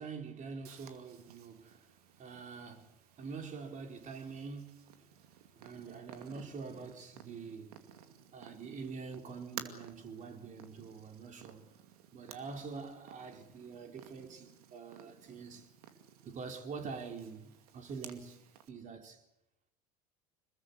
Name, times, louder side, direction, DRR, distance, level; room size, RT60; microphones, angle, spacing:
voice 1, 0.0-5.1 5.5-7.8 8.3-11.6 12.1-15.7 16.2-18.4 18.7-19.2, right 5 dB, 40° right, 4.2 m, -45 dB
Purr, 0.6-18.7, right 9 dB, 70° right, 2.4 m, -54 dB
27.0 x 21.0 x 8.3 m
figure-of-eight pair, 70°, 20 cm